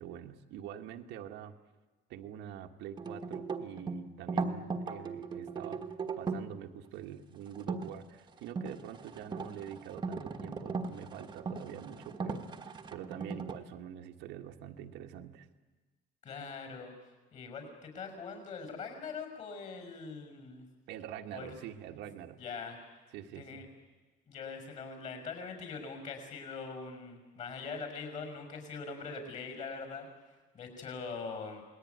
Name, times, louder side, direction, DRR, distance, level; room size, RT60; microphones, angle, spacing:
voice 1, 0.0-1.5 2.1-15.5 20.9-22.4 23.1-23.6, right 10 dB, 80° right, 4 dB, 1.7 m, -45 dB
sound 1, 3.0-6.5 7.5-7.9 8.4-13.5, right 4 dB, 25° right, 1.4 m, -38 dB
voice 2, 16.2-16.9 17.3-20.7 21.3-21.5 22.4-22.8 23.3-23.7 24.3-30.1 30.5-31.6, left 5 dB, 40° left, 5 dB, 6.2 m, -42 dB
28.5 x 20.0 x 9.5 m, 1.3 s
cardioid pair, 160°, 18 cm